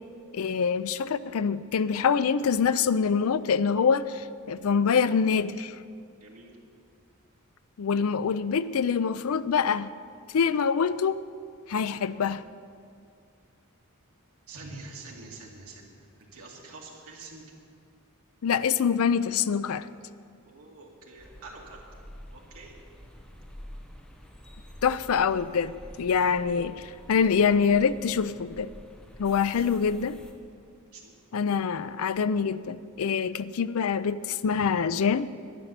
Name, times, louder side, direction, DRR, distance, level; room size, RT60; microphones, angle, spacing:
voice 1, 0.3-5.8 7.8-9.9 10.3-11.2 11.7-12.4 18.4-19.9 24.8-25.7 26.0-28.7 29.2-30.2 31.3-35.3, left 6 dB, 70° left, 0.4 m, -25 dB
voice 2, 6.2-6.6 14.5-16.1 16.3-17.4 20.4-21.8 22.3-22.7 29.4-29.6 30.9-31.1 34.5-34.7, right 3 dB, 75° right, 2.3 m, -46 dB
sound 1, 21.2-30.3, equal, 5° left, 1.0 m, -48 dB
11.0 x 10.0 x 6.7 m
head